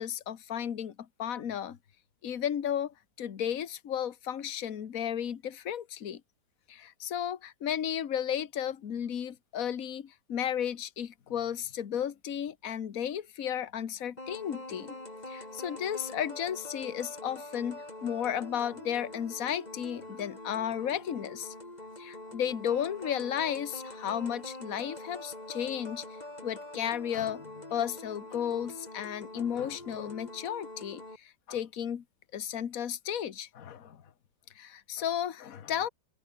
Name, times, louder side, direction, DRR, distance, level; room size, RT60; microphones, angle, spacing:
voice 1, 0.0-1.8 2.2-6.2 6.7-15.0 15.3-21.5 22.0-26.0 26.4-32.0 32.3-34.0 34.5-35.9, left 9 dB, 55° left, 1.7 m, -34 dB
sound 1, 14.2-31.2, left 1 dB, 20° left, 4.4 m, -45 dB
omnidirectional pair, 1.8 m